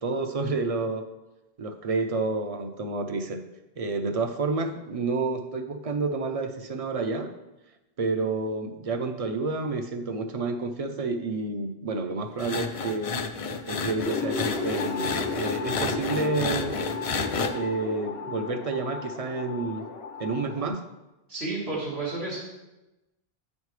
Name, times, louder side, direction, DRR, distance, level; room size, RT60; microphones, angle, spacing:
voice 1, 0.0-1.0 1.6-3.4 3.8-7.3 8.0-13.2 13.7-16.7 17.5-19.8 20.2-20.8, right 3 dB, 45° right, 7 dB, 0.6 m, -29 dB
sound 1, 12.4-17.5, left 4 dB, 50° left, 0.4 m, -31 dB
sound 2, 14.0-20.7, left 4 dB, 75° left, 1.0 m, -34 dB
voice 2, 21.3-22.4, right 3 dB, 85° right, -4 dB, 1.9 m, -31 dB
8.9 x 5.3 x 3.2 m, 1.0 s
omnidirectional pair, 1.0 m